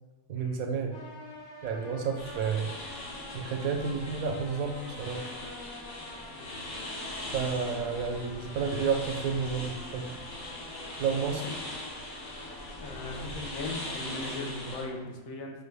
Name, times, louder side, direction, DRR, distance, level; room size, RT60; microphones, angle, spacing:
voice 1, 0.3-1.0 1.6-2.7 3.3-5.2 7.3-10.1 11.0-11.4, right 5 dB, 85° right, 4 dB, 1.0 m, -31 dB
sound 1, 0.9-15.0, left 2 dB, 45° left, 0.6 m, -48 dB
sound 2, 2.2-14.8, left 1 dB, 60° left, 1.3 m, -41 dB
voice 2, 11.5-12.0 12.8-15.6, left 2 dB, 85° left, 2 dB, 1.1 m, -39 dB
5.2 x 2.2 x 3.3 m, 1.2 s
omnidirectional pair, 1.4 m